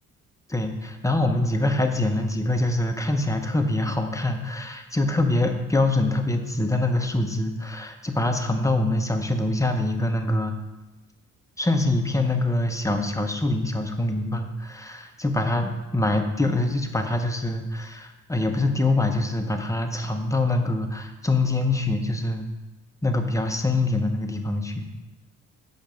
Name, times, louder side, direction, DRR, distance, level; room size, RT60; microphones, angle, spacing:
voice 1, 0.5-10.5 11.6-22.5 23.0-24.9, left 2 dB, 10° left, 4 dB, 0.8 m, -24 dB
7.3 x 5.2 x 5.2 m, 1.1 s
cardioid pair, 90°, 30 cm